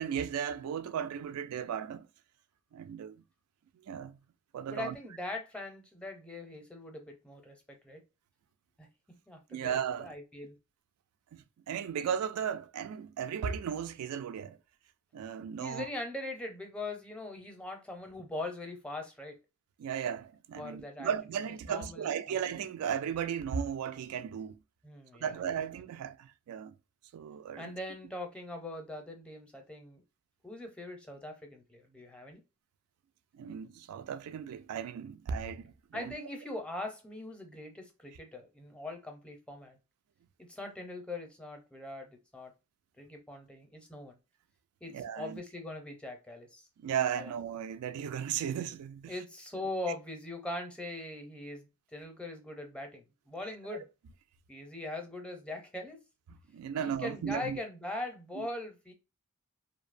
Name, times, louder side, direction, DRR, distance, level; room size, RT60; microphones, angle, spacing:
voice 1, 0.0-2.1 2.7-3.2 3.8-4.2 4.5-5.0 9.5-10.1 11.3-14.6 15.1-15.9 19.8-24.6 25.2-26.7 27.1-27.7 33.3-36.1 44.9-45.4 46.8-49.1 56.5-57.6 58.4-58.5, right 8 dB, 90° right, 0.3 m, -35 dB
voice 2, 4.7-8.0 8.8-10.6 15.6-19.4 20.5-21.1 21.7-22.4 24.8-25.4 27.6-30.0 30.4-32.4 35.9-39.8 40.4-42.5 43.0-44.2 44.8-46.7 47.2-47.3 49.1-53.9 54.5-56.0 56.8-58.9, left 2 dB, 5° left, 0.5 m, -41 dB
2.6 x 2.0 x 2.4 m
head